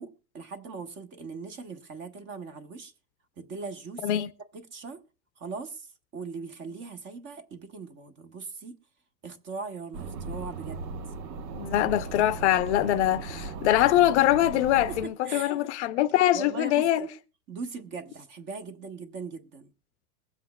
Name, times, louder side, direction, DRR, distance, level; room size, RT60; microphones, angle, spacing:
voice 1, 0.0-2.9 3.4-4.2 4.5-5.0 5.4-8.8 9.2-10.8 14.7-15.6 16.3-17.1 17.5-19.7, right 4 dB, 25° right, 0.8 m, -40 dB
sound 1, 9.9-15.1, right 4 dB, 85° right, 1.1 m, -37 dB
voice 2, 11.5-17.0, left 13 dB, 45° left, 0.5 m, -23 dB
22.0 x 7.5 x 2.2 m
supercardioid pair, 145°, 48 cm